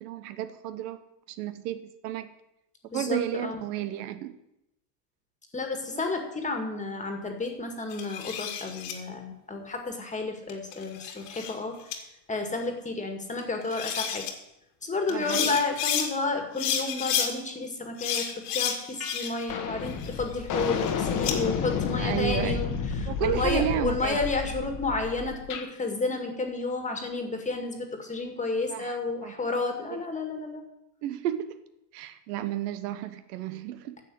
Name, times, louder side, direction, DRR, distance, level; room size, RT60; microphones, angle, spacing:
voice 1, 0.0-2.3 2.9-4.3 5.9-6.0 15.1-15.6 22.0-22.7 23.1-24.2 28.7-29.4 29.9-30.0 31.0-31.6 31.9-34.0, right 12 dB, 65° right, 11 dB, 1.0 m, -32 dB
voice 2, 2.9-3.6 5.5-11.8 12.3-14.3 14.8-30.6, left 3 dB, 15° left, 5 dB, 1.9 m, -31 dB
sound 1, 7.9-8.9 10.5-11.6 11.9-12.0 13.4-13.5 13.7-14.3 15.1-16.1 16.6-17.3 18.0-19.5 19.9-21.4, left 8 dB, 65° left, 2.3 m, -31 dB
sound 2, 19.0-19.2 19.5-25.7, left 6 dB, 40° left, 1.3 m, -31 dB
10.5 x 7.1 x 7.9 m, 0.85 s
supercardioid pair, 115°, 50 cm